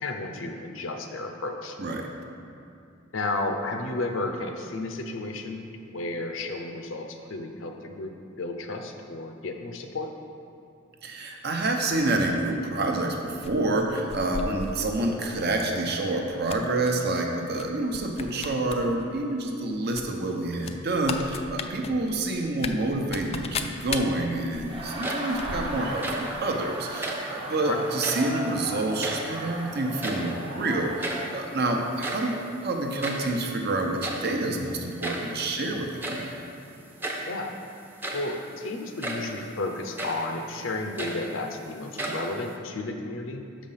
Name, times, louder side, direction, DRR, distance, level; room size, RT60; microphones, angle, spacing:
voice 1, 0.0-1.8 3.1-5.6 5.9-10.1 21.9-22.1 27.6-27.8 37.2-37.5 38.1-43.4, left 2 dB, 70° left, 4 dB, 0.7 m, -33 dB
voice 2, 11.0-32.4 32.6-36.3, right 2 dB, 55° right, 2 dB, 0.8 m, -28 dB
sound 1, 13.4-15.0 15.5-15.8 16.1-16.9 17.5-17.7 17.9-18.8 19.1-19.2 19.9-26.1 26.3-26.4, left 5 dB, 30° left, 0.3 m, -36 dB
Laughter, 24.5-31.4, right 1 dB, 25° right, 1.0 m, -36 dB
sound 2, 24.8-25.5 25.8-26.4 26.9-27.4 27.9-28.4 28.7-29.6 29.8-30.5 30.7-30.8 31.0-31.4 31.8-33.4 34.0-34.4 35.0-35.4 36.0-36.3 37.0-37.3 37.8-38.4 39.0-39.3 40.0-40.3 40.7-41.6 42.0-42.6, right 1 dB, 10° right, 0.6 m, -34 dB
6.2 x 5.2 x 5.7 m, 2.5 s
head